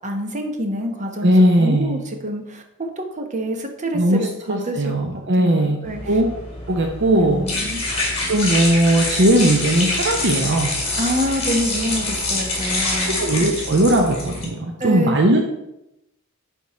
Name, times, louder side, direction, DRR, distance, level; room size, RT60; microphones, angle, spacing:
voice 1, 0.0-4.9 5.4-6.2 7.0-7.8 11.0-13.2 14.8-15.4, equal, 35° right, 4 dB, 1.0 m, -27 dB
voice 2, 1.2-2.0 3.9-5.8 6.1-6.2 6.7-7.5 8.2-10.7 13.2-15.4, right 1 dB, 55° right, 2 dB, 0.7 m, -18 dB
sound 1, 5.9-14.4, left 2 dB, 30° left, 2.6 m, -25 dB
10.5 x 3.6 x 4.2 m, 0.87 s
head